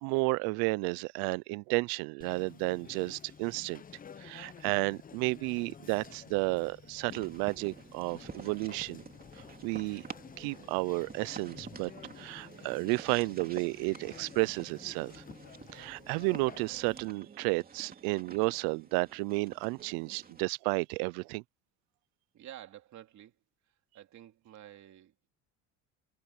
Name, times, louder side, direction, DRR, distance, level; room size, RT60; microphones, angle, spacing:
voice 1, 0.0-3.8 4.2-9.0 9.6-10.0 10.3-11.9 12.2-15.2 15.7-21.4, right 28 dB, 85° right, 0.6 m, -32 dB
Conversation, 2.2-17.1, left 7 dB, 25° left, 0.8 m, -52 dB
sound 1, 7.1-20.4, right 5 dB, 25° right, 2.9 m, -50 dB
voice 2, 22.3-23.3 23.7-25.3, right 12 dB, 50° right, 3.2 m, -51 dB
cardioid pair, 115°, 36 cm